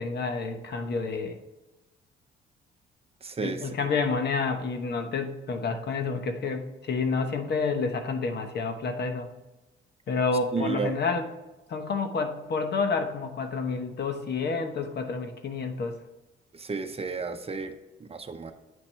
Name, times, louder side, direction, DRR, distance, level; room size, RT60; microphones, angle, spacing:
voice 1, 0.0-1.4 3.4-9.3 10.1-11.2 11.7-16.0, left 4 dB, 55° left, 6 dB, 1.1 m, -29 dB
voice 2, 3.2-3.9 10.5-10.9 16.5-18.5, right 4 dB, 30° right, 7 dB, 0.8 m, -33 dB
9.1 x 5.9 x 3.4 m, 1.1 s
cardioid pair, 90°, 20 cm